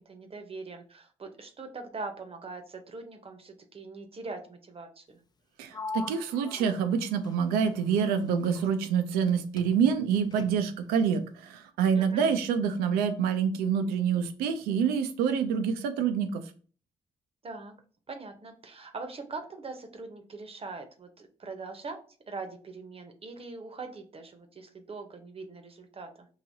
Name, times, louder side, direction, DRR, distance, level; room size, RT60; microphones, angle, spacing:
voice 1, 0.0-5.2 11.9-12.2 17.4-17.7 18.1-22.0 22.3-26.3, right 3 dB, 40° right, 5 dB, 0.8 m, -42 dB
voice 2, 5.6-16.4, right 7 dB, 80° right, 8 dB, 0.5 m, -27 dB
Sliding door, 5.7-9.3 9.6-10.9, left 3 dB, 25° left, 0.5 m, -43 dB
4.8 x 2.7 x 2.7 m, 0.40 s
hypercardioid pair, 45°, 15 cm